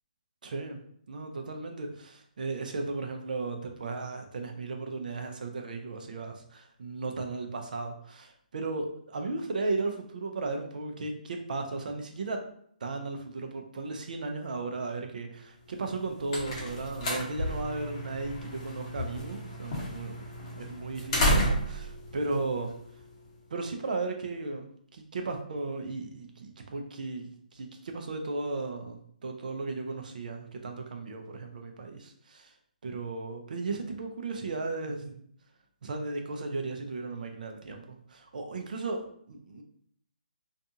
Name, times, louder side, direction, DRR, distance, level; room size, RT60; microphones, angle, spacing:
voice 1, 0.4-0.8 1.1-12.4 12.8-20.3 20.5-22.7 23.5-32.5 32.8-35.2 35.8-39.6, right 3 dB, 60° right, 4 dB, 0.5 m, -35 dB
sound 1, 15.8-23.3, equal, 35° left, 0.7 m, -32 dB
2.5 x 2.3 x 2.7 m, 0.65 s
hypercardioid pair, 150°, 5 cm